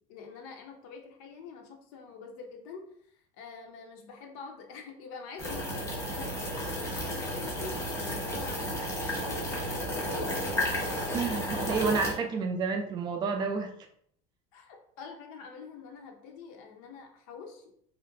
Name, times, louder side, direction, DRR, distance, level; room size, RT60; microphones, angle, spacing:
voice 1, 0.1-10.4 11.3-12.2 14.5-17.7, left 5 dB, 70° left, 2 dB, 0.7 m, -46 dB
sound 1, 5.4-12.1, equal, 15° left, 0.7 m, -33 dB
voice 2, 11.1-13.7, right 5 dB, 25° right, 4 dB, 0.3 m, -30 dB
2.9 x 2.5 x 2.6 m, 0.66 s
cardioid pair, 160°, 18 cm